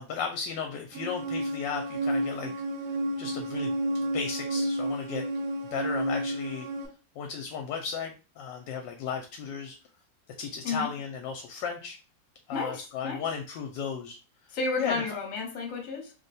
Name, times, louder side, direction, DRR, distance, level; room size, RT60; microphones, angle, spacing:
voice 1, 0.0-2.5 3.2-3.7 4.1-5.2 5.7-6.7 7.2-9.8 10.4-12.0 12.5-14.2 14.8-15.0, left 6 dB, 75° left, 4 dB, 1.2 m, -35 dB
sound 1, 0.9-6.9, right 1 dB, 55° right, 1.1 m, -31 dB
voice 2, 12.5-13.2 14.5-16.1, left 3 dB, 50° left, 2 dB, 1.2 m, -32 dB
3.2 x 2.2 x 4.0 m, 0.33 s
omnidirectional pair, 2.0 m